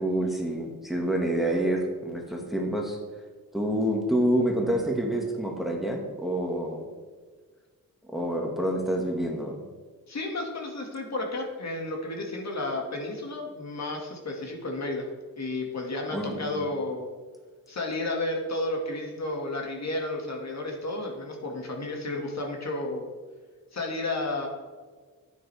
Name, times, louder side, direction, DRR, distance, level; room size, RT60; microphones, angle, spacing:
voice 1, 0.0-3.0 3.5-6.9 8.1-9.6 16.1-16.7, right 1 dB, ahead, 0 dB, 2.0 m, -27 dB
voice 2, 10.1-15.1 15.4-17.1 17.7-23.1 23.7-24.5, left 2 dB, 50° left, 0 dB, 2.2 m, -32 dB
10.0 x 9.0 x 3.5 m, 1.5 s
cardioid pair, 75°, 35 cm